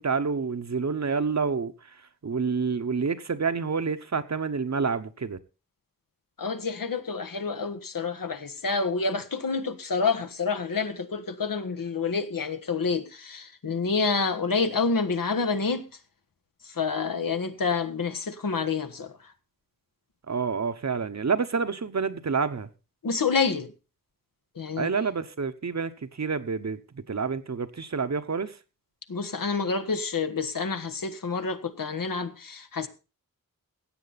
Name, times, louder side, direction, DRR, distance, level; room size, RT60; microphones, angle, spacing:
voice 1, 0.0-5.4 20.3-22.7 24.8-28.6, right 5 dB, 50° right, 1.0 m, -28 dB
voice 2, 6.4-15.8 16.7-19.1 23.0-23.7 24.5-24.9 29.1-32.9, left 4 dB, 70° left, 1.3 m, -28 dB
16.5 x 8.0 x 4.1 m
wide cardioid pair, 85°, 35 cm